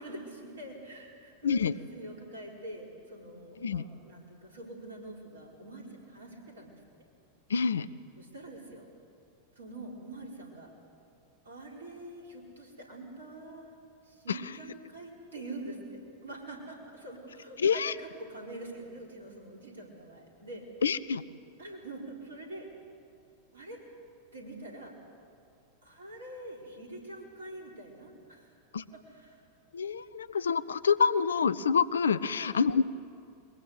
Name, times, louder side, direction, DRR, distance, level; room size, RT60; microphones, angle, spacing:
voice 1, 0.0-6.8 8.2-8.8 9.5-10.7 11.4-20.6 21.6-22.7 23.5-23.8 24.3-25.0 25.8-28.5 28.9-29.4 32.3-32.5, right 1 dB, 70° right, 0 dB, 4.6 m, -45 dB
voice 2, 1.4-1.7 3.6-3.8 7.5-7.9 14.3-14.4 17.6-17.9 20.8-21.2 28.7-28.8 29.7-32.8, left 6 dB, 70° left, 16 dB, 0.6 m, -27 dB
22.0 x 21.5 x 8.1 m, 2.4 s
figure-of-eight pair, 90°, 0 cm